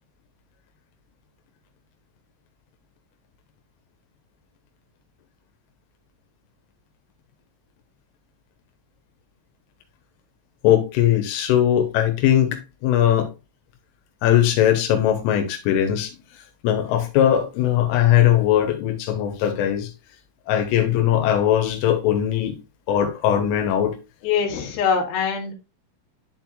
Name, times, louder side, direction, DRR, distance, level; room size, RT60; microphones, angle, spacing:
voice 1, 10.6-13.3 14.2-16.1 16.6-19.9 20.5-22.6 22.9-24.0, left 11 dB, 85° left, 3.4 m, -20 dB
voice 2, 24.2-25.5, left 6 dB, 60° left, 2.9 m, -23 dB
11.0 x 4.5 x 2.4 m
omnidirectional pair, 5.6 m